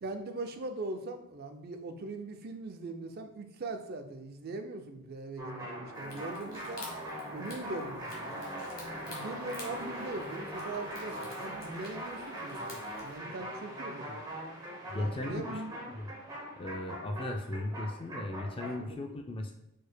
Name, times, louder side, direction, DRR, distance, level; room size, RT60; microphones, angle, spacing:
voice 1, 0.0-6.9 7.3-8.5 9.1-14.2 15.0-15.7 18.8-19.0, right 2 dB, 50° right, 7 dB, 0.5 m, -41 dB
sound 1, 5.4-18.9, equal, 20° right, 0.9 m, -41 dB
sound 2, 5.9-13.2, left 3 dB, 45° left, 1.2 m, -52 dB
voice 2, 14.9-15.6 15.9-16.1 16.6-19.5, left 1 dB, 25° left, 4 dB, 0.3 m, -36 dB
4.5 x 4.5 x 2.2 m, 0.80 s
head